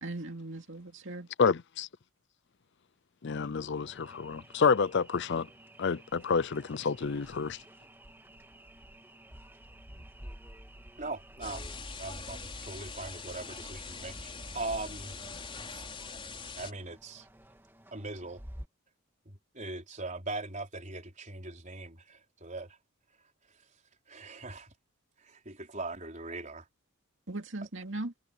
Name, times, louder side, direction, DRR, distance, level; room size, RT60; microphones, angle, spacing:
voice 1, 0.0-1.3 27.3-28.1, right 2 dB, 60° right, 2.6 m, -38 dB
voice 2, 1.4-1.9 3.2-5.5 5.8-7.6, left 5 dB, 50° left, 0.5 m, -28 dB
sound 1, 3.7-18.7, right 1 dB, 10° right, 2.1 m, -51 dB
voice 3, 11.0-11.7 12.0-15.1 15.7-15.8 16.6-17.3 17.9-18.4 19.2-22.7 24.1-24.7 25.2-26.6, right 2 dB, 35° right, 4.9 m, -40 dB
sound 2, 11.4-16.7, left 4 dB, 25° left, 5.0 m, -43 dB
head